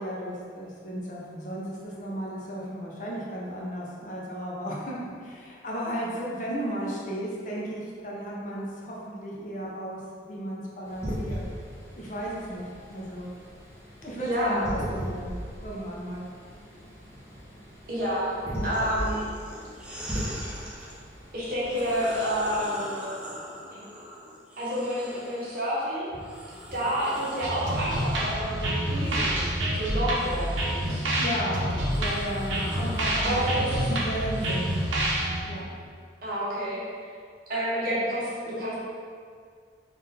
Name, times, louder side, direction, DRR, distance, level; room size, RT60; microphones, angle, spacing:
voice 1, 0.0-11.4 11.9-13.3 14.0-15.3 15.6-16.2 31.1-34.7 35.4-35.7, equal, 40° left, -5 dB, 0.6 m, -34 dB
sound 1, 10.8-22.6, equal, 15° left, 0.9 m, -38 dB
voice 2, 14.2-14.6 17.9-18.3 18.6-19.2 21.3-23.1 23.7-23.8 24.6-26.1 26.7-29.5 29.7-31.2 31.6-31.8 33.2-33.8 36.2-36.8 37.5-38.8, equal, 50° right, -8 dB, 1.1 m, -29 dB
sound 2, 18.7-21.0 21.5-25.6 26.1-35.3, equal, 5° right, 0.4 m, -43 dB
sound 3, 27.4-35.4, right 1 dB, 85° right, 0.7 m, -28 dB
3.7 x 2.6 x 4.0 m, 2.1 s
head